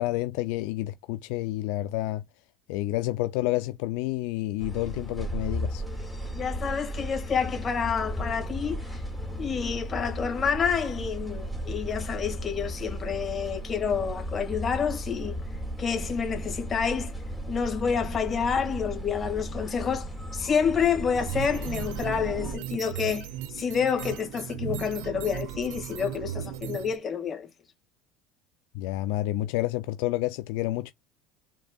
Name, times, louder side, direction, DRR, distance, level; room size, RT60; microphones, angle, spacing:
voice 1, 0.0-2.2 2.7-5.8 28.7-30.9, left 16 dB, 80° left, 0.5 m, -29 dB
sound 1, 4.6-22.6, equal, ahead, 2.5 m, -35 dB
voice 2, 6.3-9.0 9.4-15.4 15.8-17.1 17.5-27.5, left 6 dB, 30° left, 2.0 m, -28 dB
sound 2, 21.1-27.0, right 10 dB, 80° right, 0.9 m, -36 dB
5.9 x 3.7 x 2.4 m
supercardioid pair, 115°, 0 cm